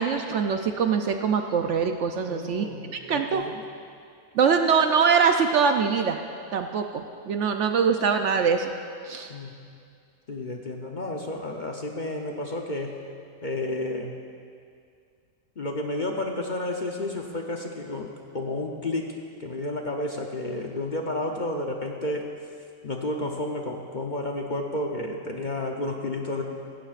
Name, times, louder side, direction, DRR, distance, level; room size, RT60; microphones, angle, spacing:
voice 1, 0.0-3.4 4.3-6.2 6.5-8.7 9.0-9.3, right 6 dB, 65° right, 6 dB, 0.8 m, -23 dB
voice 2, 2.3-3.6 9.3-9.5 10.3-13.0 13.4-14.1 15.6-19.1 19.4-22.3 22.8-26.4, left 2 dB, 40° left, 1 dB, 0.7 m, -31 dB
16.5 x 15.5 x 2.5 m, 2.3 s
omnidirectional pair, 1.5 m